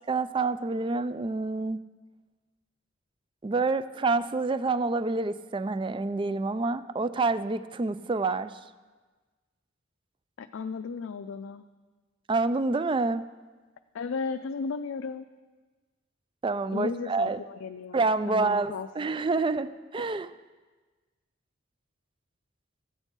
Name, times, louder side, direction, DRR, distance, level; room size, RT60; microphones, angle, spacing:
voice 1, 0.1-1.8 3.4-8.6 12.3-13.2 16.4-17.4 17.9-19.7 19.9-20.3, right 3 dB, 25° right, 14 dB, 0.3 m, -27 dB
voice 2, 10.4-11.6 13.9-15.3 16.7-18.0 18.3-18.9, left 5 dB, 85° left, 8 dB, 0.4 m, -35 dB
13.5 x 8.1 x 4.5 m, 1.3 s
head